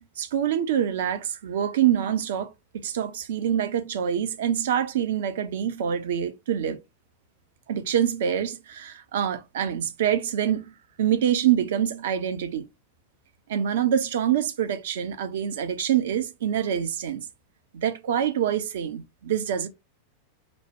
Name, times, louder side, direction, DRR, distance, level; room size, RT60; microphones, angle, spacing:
voice 1, 0.0-6.8 7.7-10.7 11.0-12.7 13.5-17.3 17.7-19.7, right 9 dB, 60° right, 0.7 m, -26 dB
5.0 x 2.1 x 3.5 m
figure-of-eight pair, 90°, 0 cm